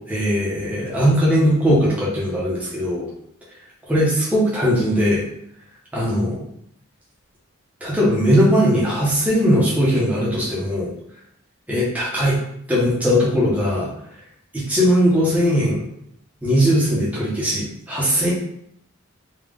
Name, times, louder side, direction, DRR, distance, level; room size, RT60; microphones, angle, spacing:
voice 1, 0.1-3.1 3.9-5.2 5.9-6.4 7.8-10.9 11.7-12.4 12.7-13.9 14.5-15.8 16.4-18.3, equal, 5° right, -7 dB, 1.1 m, -19 dB
3.4 x 3.2 x 3.6 m, 0.72 s
head